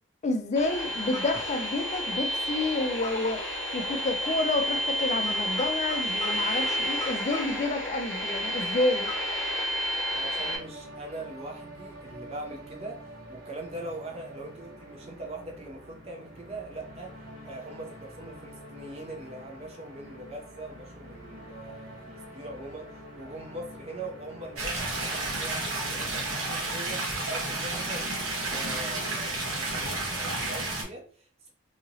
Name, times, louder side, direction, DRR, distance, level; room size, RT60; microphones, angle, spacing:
voice 1, 0.2-3.4 3.7-9.1, left 2 dB, 35° left, 0.4 m, -29 dB
sound 1, 0.6-10.6, equal, 10° left, 1.1 m, -30 dB
voice 2, 10.1-31.5, right 2 dB, 30° right, 0.6 m, -42 dB
sound 2, 10.4-30.3, equal, 70° right, 1.0 m, -46 dB
sound 3, 24.6-30.8, right 2 dB, 85° right, 1.0 m, -31 dB
2.8 x 2.8 x 2.7 m
head